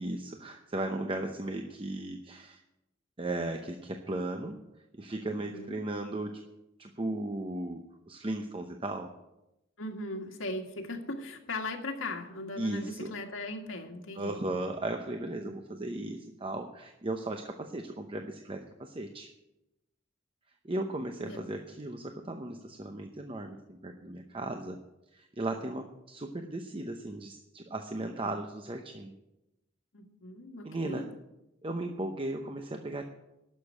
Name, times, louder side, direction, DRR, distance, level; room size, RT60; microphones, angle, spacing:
voice 1, 0.0-2.6 3.2-4.6 4.9-6.4 6.8-7.8 8.1-9.1 12.6-13.1 14.2-19.3 20.6-24.8 25.1-29.1 30.6-31.1 31.6-33.0, right 2 dB, 25° right, 5 dB, 0.8 m, -36 dB
voice 2, 5.3-5.8 9.8-14.4 15.4-15.6 21.3-21.4 29.9-31.1, left 2 dB, 85° left, 3 dB, 1.8 m, -39 dB
11.5 x 6.8 x 9.6 m, 0.92 s
head